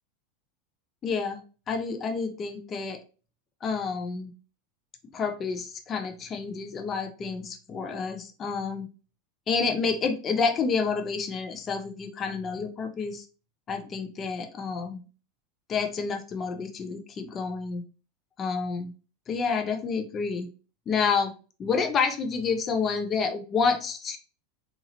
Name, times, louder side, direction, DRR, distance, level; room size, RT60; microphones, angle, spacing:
voice 1, 1.0-3.0 3.6-4.3 5.1-8.9 9.5-13.3 13.7-15.0 15.7-17.8 18.4-18.9 19.3-20.5 20.9-21.3 21.6-24.2, left 5 dB, 30° left, 6 dB, 0.6 m, -29 dB
3.7 x 3.0 x 2.8 m, 0.36 s
hypercardioid pair, 85°, 0 cm